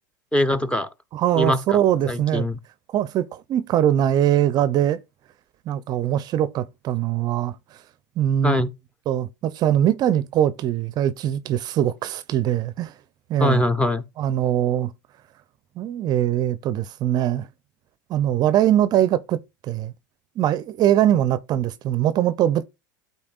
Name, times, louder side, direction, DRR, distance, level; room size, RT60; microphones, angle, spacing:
voice 1, 0.3-0.9 1.3-1.8 2.1-2.6 8.4-8.7 13.4-14.0, left 1 dB, 10° left, 0.8 m, -22 dB
voice 2, 1.1-2.5 2.9-5.0 5.7-7.8 8.2-8.6 9.1-12.9 13.3-13.6 14.2-14.9 15.8-17.5 18.1-19.9 20.4-22.6, right 11 dB, 40° right, 0.5 m, -22 dB
12.0 x 4.3 x 2.4 m
hypercardioid pair, 90°, 11 cm